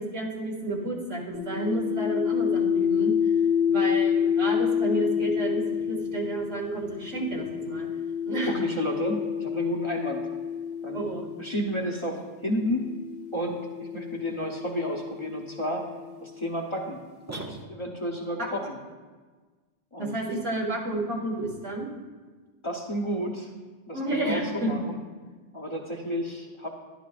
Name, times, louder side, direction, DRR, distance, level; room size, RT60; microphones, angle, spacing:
voice 1, 0.0-3.1 3.7-7.9 8.3-8.6 10.9-11.3 20.0-21.9 23.9-24.7, right 2 dB, 80° right, -2 dB, 2.3 m, -31 dB
sound 1, 1.3-11.7 12.6-16.4, left 8 dB, 60° left, 1.3 m, -28 dB
voice 2, 8.5-10.3 10.8-11.0 11.4-12.8 13.3-15.9 16.2-17.0 17.3-18.8 19.9-20.2 22.6-23.5 23.9-25.0 25.5-26.7, equal, 25° left, -1 dB, 1.0 m, -31 dB
sound 2, 17.3-18.2, right 2 dB, 20° right, 0.4 m, -40 dB
12.0 x 11.5 x 2.5 m, 1.4 s
omnidirectional pair, 1.2 m